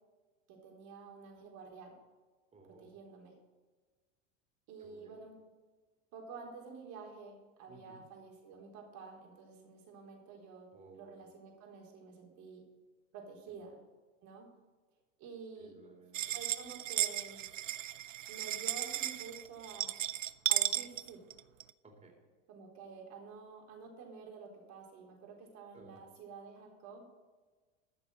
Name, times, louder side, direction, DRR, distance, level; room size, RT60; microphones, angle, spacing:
voice 1, 0.5-1.9 2.8-3.4 4.7-5.3 6.1-12.7 13.1-13.8 14.2-14.5 15.2-15.8 16.3-17.5 18.3-19.9 20.5-21.3 22.5-27.0, right 5 dB, 50° right, 0 dB, 4.2 m, -50 dB
voice 2, 2.5-2.9 4.8-5.2 7.7-8.0 10.7-11.2 13.5-13.6 15.6-16.3 21.8-22.2 25.7-26.0, right 3 dB, 20° right, 1 dB, 4.0 m, -58 dB
sound 1, 16.1-21.7, right 13 dB, 85° right, 0.6 m, -35 dB
14.5 x 6.1 x 7.8 m, 1.3 s
hypercardioid pair, 95°, 37 cm